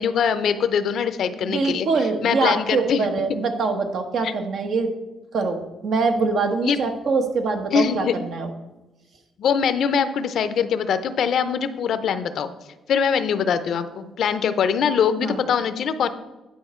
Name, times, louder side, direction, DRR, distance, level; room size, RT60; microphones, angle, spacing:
voice 1, 0.0-1.9 2.2-3.1 4.2-4.3 6.6-6.8 7.7-8.2 9.4-12.5 12.9-16.1, left 7 dB, 65° left, 11 dB, 0.6 m, -22 dB
voice 2, 1.4-5.0 5.3-8.5 15.2-15.4, right 4 dB, 65° right, 5 dB, 1.2 m, -24 dB
10.0 x 5.1 x 4.4 m, 1.1 s
cardioid pair, 90°, 0 cm